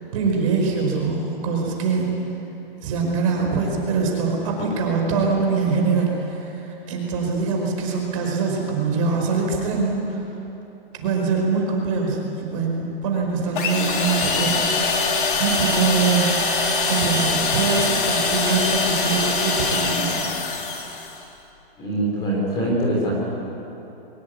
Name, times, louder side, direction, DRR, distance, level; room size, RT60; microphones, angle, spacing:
voice 1, 0.1-2.1 2.8-6.5 6.9-10.2 10.9-14.6 15.1-16.3 16.9-20.2, right 4 dB, 35° right, 0 dB, 5.1 m, -23 dB
sound 1, 13.6-21.2, left 3 dB, 60° left, 4.0 m, -23 dB
voice 2, 21.8-23.1, right 1 dB, 15° left, -3 dB, 3.7 m, -23 dB
23.5 x 21.5 x 9.7 m, 3.0 s
hypercardioid pair, 175°, 30 cm